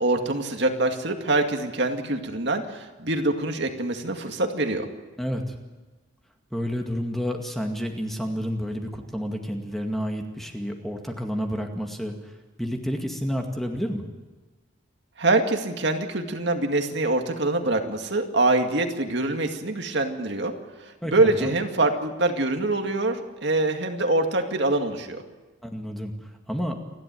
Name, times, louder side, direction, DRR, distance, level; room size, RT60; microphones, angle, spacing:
voice 1, 0.0-4.9 15.2-20.5 20.8-25.2, right 2 dB, 60° right, 4 dB, 2.2 m, -24 dB
voice 2, 5.2-5.5 6.5-12.1 12.6-14.0 21.0-21.5 25.6-26.1 26.5-26.8, equal, ahead, 3 dB, 2.1 m, -30 dB
29.0 x 12.0 x 9.3 m, 1.3 s
head